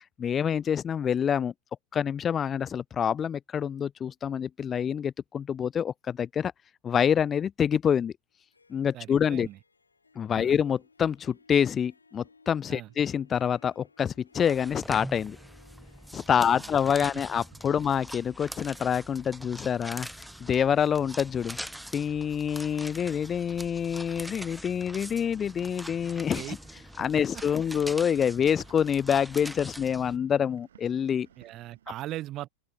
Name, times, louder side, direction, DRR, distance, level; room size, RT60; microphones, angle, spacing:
voice 1, 0.0-1.5 1.9-6.5 6.8-8.1 8.7-9.5 10.2-15.4 16.1-20.1 20.4-21.6 21.9-26.6 27.0-31.3, left 8 dB, 25° left, 0.5 m, -27 dB
Harp, 8.3-22.3, left 4 dB, 80° left, 3.6 m, -62 dB
voice 2, 8.9-9.6 10.3-10.5 12.7-12.9 16.3-16.7 26.3-26.6 26.9-27.0 31.4-32.5, right 15 dB, 35° right, 1.1 m, -39 dB
sound 1, 14.4-30.2, equal, ahead, 1.7 m, -43 dB
sound 2, 17.5-32.0, right 10 dB, 65° right, 3.6 m, -62 dB
open air
figure-of-eight pair, 90°, 0 cm